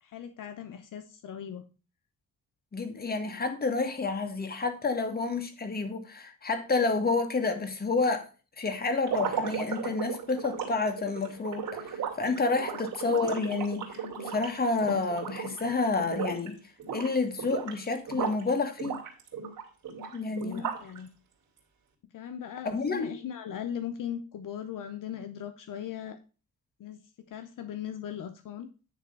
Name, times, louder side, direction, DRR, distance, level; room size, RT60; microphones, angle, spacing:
voice 1, 0.0-1.6 20.1-21.1 22.1-26.2 26.8-27.0 27.3-28.7, left 9 dB, 60° left, 0.8 m, -39 dB
voice 2, 2.7-8.3 8.6-16.5 16.9-19.0 20.1-20.7 22.6-23.2, left 3 dB, 25° left, 1.6 m, -29 dB
sound 1, 9.0-15.7 16.0-16.5 16.8-18.4 18.8-21.0, right 7 dB, 60° right, 2.9 m, -35 dB
10.0 x 3.4 x 6.6 m
cardioid pair, 120°, 35 cm